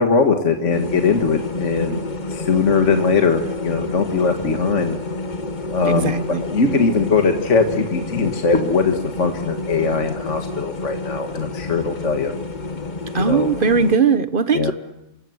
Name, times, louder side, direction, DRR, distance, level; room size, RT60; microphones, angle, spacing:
voice 1, 0.0-2.0 2.3-5.0 5.7-6.2 6.4-12.3 13.2-13.5 14.5-14.7, left 4 dB, 60° left, 5 dB, 2.1 m, -20 dB
sound 1, 0.7-14.0, left 2 dB, 35° left, 1.4 m, -30 dB
voice 2, 5.8-6.4 13.1-14.7, right 5 dB, 40° right, 12 dB, 1.3 m, -19 dB
28.5 x 25.5 x 8.0 m, 0.85 s
omnidirectional pair, 1.4 m